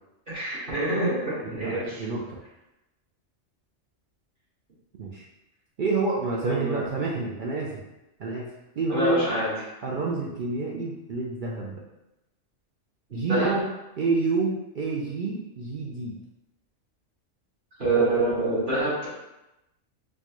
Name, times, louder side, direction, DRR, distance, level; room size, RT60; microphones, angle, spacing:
voice 1, 0.3-2.0 6.4-6.8 8.9-9.5 13.1-13.6 17.8-19.1, right 2 dB, 45° right, -11 dB, 1.5 m, -26 dB
voice 2, 1.4-2.4 5.0-5.2 5.8-7.8 8.2-9.3 9.8-11.8 13.1-13.6 14.0-16.1, right 3 dB, 60° right, -4 dB, 0.5 m, -28 dB
4.3 x 2.2 x 2.9 m, 0.94 s
omnidirectional pair, 1.3 m